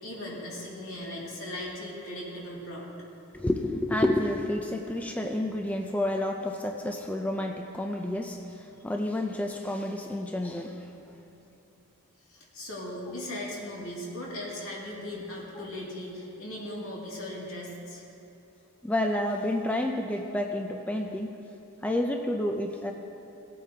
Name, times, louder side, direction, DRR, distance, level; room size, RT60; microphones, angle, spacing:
voice 1, 0.0-2.9 12.3-18.0, left 1 dB, 70° left, -5 dB, 2.4 m, -38 dB
voice 2, 3.3-10.9 18.8-21.3 21.8-22.9, left 1 dB, 5° left, 2 dB, 0.4 m, -29 dB
18.0 x 8.4 x 2.8 m, 3.0 s
head